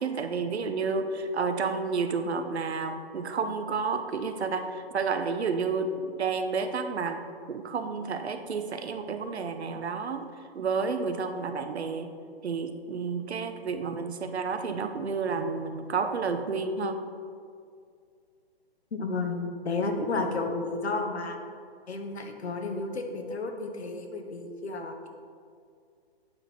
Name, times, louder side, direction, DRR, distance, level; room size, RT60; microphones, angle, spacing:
voice 1, 0.0-7.2 7.5-10.3 10.5-12.1 12.4-17.0, right 4 dB, 85° right, 7 dB, 0.9 m, -30 dB
voice 2, 18.9-21.4 21.9-25.1, left 3 dB, 90° left, 4 dB, 1.3 m, -32 dB
8.7 x 5.3 x 4.5 m, 2.2 s
hypercardioid pair, 175°, 32 cm